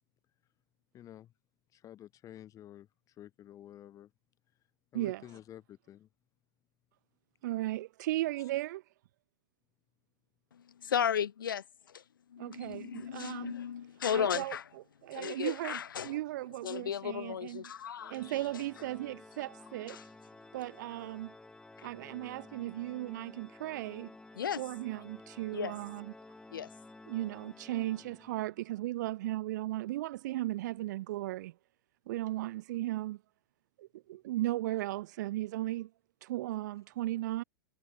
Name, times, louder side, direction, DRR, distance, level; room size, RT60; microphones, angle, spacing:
voice 1, 0.9-1.3 1.7-2.9 3.2-4.1 4.9-6.1, left 11 dB, 30° left, 3.8 m, -50 dB
voice 2, 7.4-8.8 12.4-13.6 14.1-14.6 15.0-17.7 18.0-20.0 20.5-21.3 21.8-24.1 24.6-26.1 27.1-31.5 32.1-33.2 33.8-35.9 36.2-37.4, right 16 dB, 60° right, 1.3 m, -36 dB
voice 3, 10.5-12.0 12.3-14.6 15.1-16.2 16.6-18.3 19.9-20.0 21.8-21.9 24.4-24.6 25.5-25.7 26.5-26.7, left 8 dB, 85° left, 0.6 m, -35 dB
Organ, 18.0-28.7, left 2 dB, 5° left, 1.0 m, -53 dB
hypercardioid pair, 105°, 11 cm